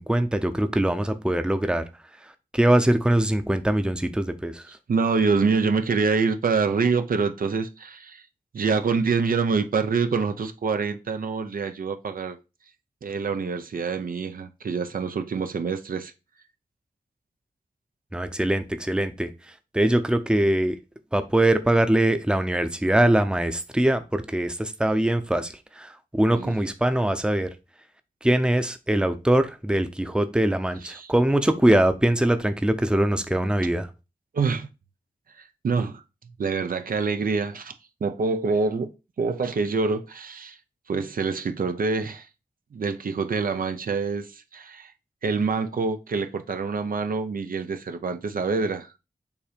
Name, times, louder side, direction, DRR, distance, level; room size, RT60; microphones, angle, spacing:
voice 1, 0.0-1.8 2.5-4.6 18.1-19.3 19.7-20.8 21.1-27.5 28.2-33.9, right 1 dB, 5° right, 0.6 m, -22 dB
voice 2, 4.9-8.2 8.5-12.4 13.0-16.1 26.4-26.5 30.8-31.1 34.3-34.7 35.6-36.0 36.4-37.7 38.0-38.9 39.2-40.6 40.9-42.3 42.7-44.9 45.2-48.9, right 4 dB, 85° right, 0.6 m, -26 dB
7.1 x 2.8 x 5.0 m
wide cardioid pair, 90°, 14 cm